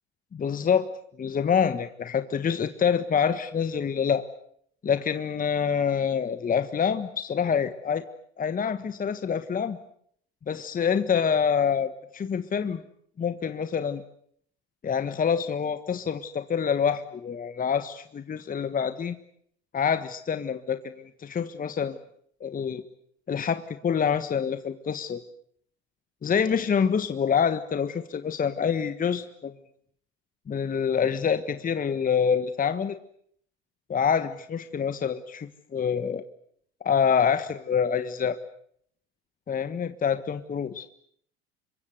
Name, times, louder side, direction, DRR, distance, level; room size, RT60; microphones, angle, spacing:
voice 1, 0.3-0.9 1.2-4.2 4.8-8.0 8.4-9.8 10.5-12.8 13.2-14.0 14.8-19.1 19.7-22.0 22.4-22.8 23.3-25.2 26.2-29.5 30.5-33.0 33.9-36.2 36.8-38.4 39.5-40.8, left 7 dB, 25° left, 10 dB, 1.5 m, -26 dB
27.5 x 23.0 x 8.1 m, 0.67 s
hypercardioid pair, 80°, 33 cm